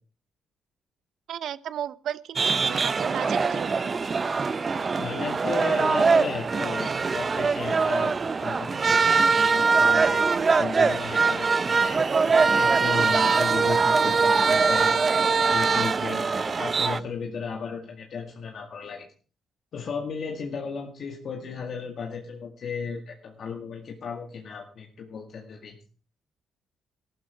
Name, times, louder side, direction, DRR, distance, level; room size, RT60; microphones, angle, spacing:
voice 1, 1.3-3.9, right 10 dB, 70° right, 17 dB, 0.8 m, -34 dB
sound 1, 2.4-17.0, right 4 dB, 35° right, 0.7 m, -22 dB
voice 2, 5.0-12.0 12.5-15.0 15.5-19.1 19.7-25.8, left 5 dB, 60° left, 2 dB, 2.1 m, -35 dB
14.5 x 12.5 x 4.5 m, 0.39 s
cardioid pair, 90°, 0 cm